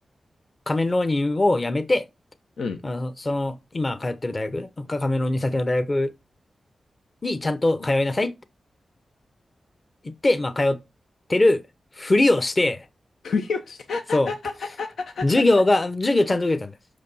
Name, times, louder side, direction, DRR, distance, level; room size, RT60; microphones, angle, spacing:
voice 1, 0.7-2.0 2.8-6.1 7.2-8.3 10.0-10.8 11.3-11.6 12.0-12.9 14.1-14.3 15.2-16.7, left 2 dB, 35° left, 0.9 m, -22 dB
voice 2, 13.2-15.3, left 4 dB, 85° left, 0.7 m, -29 dB
6.1 x 5.0 x 5.5 m
cardioid pair, 55°, 0 cm